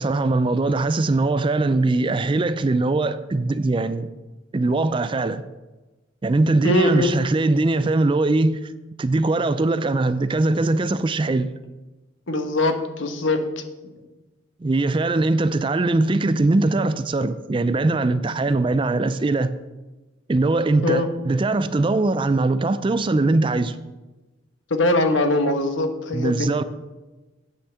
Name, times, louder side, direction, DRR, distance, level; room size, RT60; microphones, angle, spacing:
voice 1, 0.0-4.1 4.5-5.4 6.2-8.7 9.0-11.5 14.6-19.5 20.3-23.8 26.1-26.6, right 2 dB, 25° right, 0.4 m, -21 dB
voice 2, 6.6-7.1 12.3-13.4 13.8-13.9 20.8-21.1 24.7-26.5, left 2 dB, 80° left, 1.2 m, -21 dB
9.2 x 5.5 x 7.1 m
head